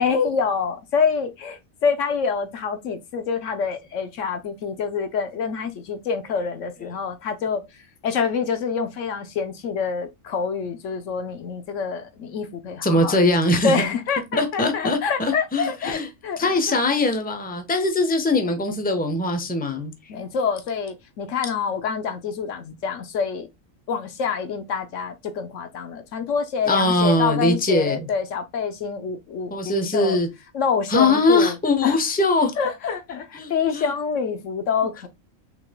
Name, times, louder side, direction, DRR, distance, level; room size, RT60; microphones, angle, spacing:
voice 1, 0.0-7.6 8.0-13.2 13.6-16.5 20.1-23.5 23.9-30.2 30.5-31.5 31.8-32.0 32.6-35.1, left 6 dB, 70° left, 1.0 m, -26 dB
voice 2, 12.8-13.9 14.3-16.1 16.4-19.9 26.7-28.1 29.5-30.3 30.9-32.5 33.3-33.9, left 2 dB, 10° left, 0.8 m, -21 dB
6.1 x 3.7 x 2.2 m
omnidirectional pair, 1.4 m